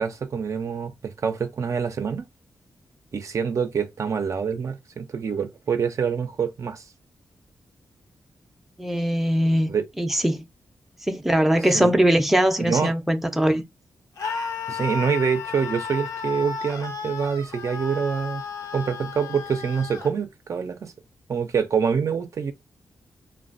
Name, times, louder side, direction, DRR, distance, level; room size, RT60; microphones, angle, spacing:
voice 1, 0.0-2.3 3.1-6.8 9.7-9.8 11.7-11.9 12.6-12.9 14.7-18.4 18.7-20.9 21.3-22.5, right 6 dB, 55° right, 0.5 m, -26 dB
voice 2, 8.8-9.7 10.0-10.5 11.1-13.6, right 1 dB, 5° right, 0.5 m, -21 dB
Screaming, 14.2-20.1, left 5 dB, 60° left, 0.7 m, -33 dB
3.2 x 2.2 x 2.5 m
cardioid pair, 80°, 7 cm